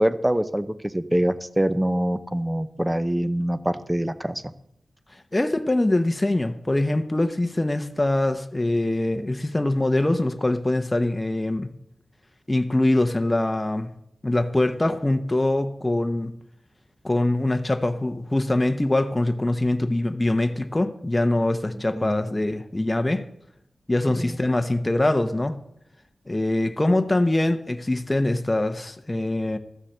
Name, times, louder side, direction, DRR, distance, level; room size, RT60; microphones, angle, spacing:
voice 1, 0.0-4.4 22.0-22.2 24.1-24.3, right 1 dB, 10° right, 13 dB, 0.8 m, -24 dB
voice 2, 5.1-11.7 12.5-13.9 14.2-16.4 17.0-23.3 23.9-25.6 26.3-29.6, left 1 dB, 20° left, 7 dB, 0.8 m, -23 dB
13.0 x 7.2 x 6.7 m, 0.77 s
cardioid pair, 65°, 0 cm